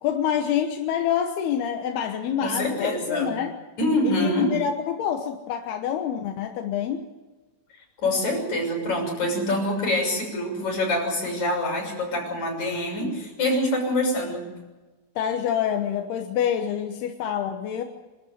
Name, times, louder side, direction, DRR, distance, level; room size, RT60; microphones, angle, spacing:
voice 1, 0.0-3.5 4.0-7.0 15.2-17.8, left 9 dB, 70° left, 4 dB, 2.6 m, -26 dB
voice 2, 2.4-3.3 3.8-4.5 8.0-14.4, left 1 dB, 35° left, 0 dB, 7.5 m, -25 dB
26.5 x 13.0 x 9.4 m, 1.2 s
omnidirectional pair, 5.8 m